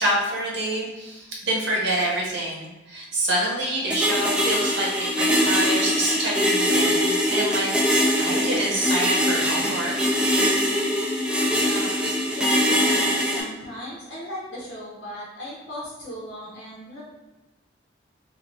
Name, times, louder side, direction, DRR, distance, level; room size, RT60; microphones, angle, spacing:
voice 1, 0.0-4.9 5.2-7.7 8.2-9.9, right 1 dB, 75° right, -4 dB, 1.0 m, -26 dB
sound 1, 3.9-13.4, equal, 5° right, 0.4 m, -22 dB
voice 2, 11.5-12.0 12.3-17.0, equal, 75° left, -7 dB, 0.8 m, -37 dB
2.8 x 2.7 x 3.1 m, 1.1 s
head